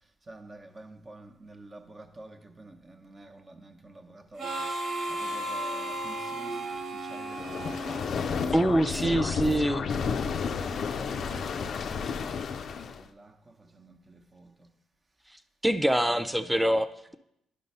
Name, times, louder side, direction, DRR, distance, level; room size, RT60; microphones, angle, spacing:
voice 1, 0.3-4.7 5.1-8.0 8.9-14.7 16.0-16.6, right 2 dB, 30° right, 0.9 m, -49 dB
Harmonica, 4.4-8.9, right 1 dB, 70° right, 1.5 m, -35 dB
sound 1, 7.3-13.1, left 6 dB, 55° left, 0.4 m, -32 dB
voice 2, 8.5-9.9 15.6-17.2, right 1 dB, 5° right, 0.4 m, -25 dB
10.0 x 3.9 x 5.4 m
cardioid pair, 90°, 0 cm